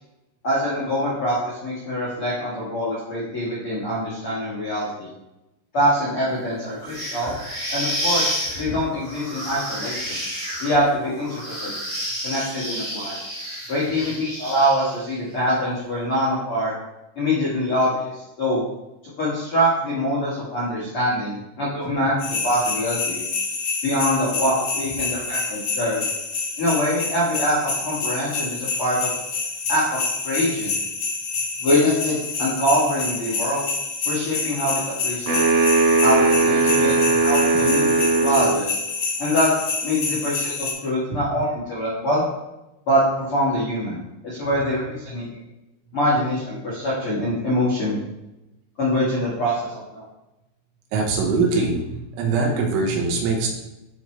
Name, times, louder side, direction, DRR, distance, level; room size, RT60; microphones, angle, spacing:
voice 1, 0.4-5.1 5.7-7.3 7.7-10.2 10.6-11.8 12.2-13.2 13.7-16.7 17.1-18.6 19.2-23.2 23.8-26.0 26.6-29.1 29.7-30.7 31.6-33.6 34.0-35.5 36.0-38.7 39.2-39.5 39.8-42.2 42.9-45.3 45.9-47.9 48.8-50.0, equal, 80° left, -9 dB, 1.2 m, -24 dB
sound 1, 6.8-15.1, equal, 25° right, 0.6 m, -30 dB
sound 2, 22.2-40.7, left 4 dB, 60° left, 1.8 m, -27 dB
sound 3, 35.3-38.6, right 3 dB, 55° right, 2.6 m, -19 dB
voice 2, 36.8-37.3 37.5-38.0 41.1-41.4 44.6-44.7 50.9-53.5, right 4 dB, 80° right, 1 dB, 3.6 m, -24 dB
12.0 x 4.5 x 3.2 m, 0.94 s
omnidirectional pair, 5.7 m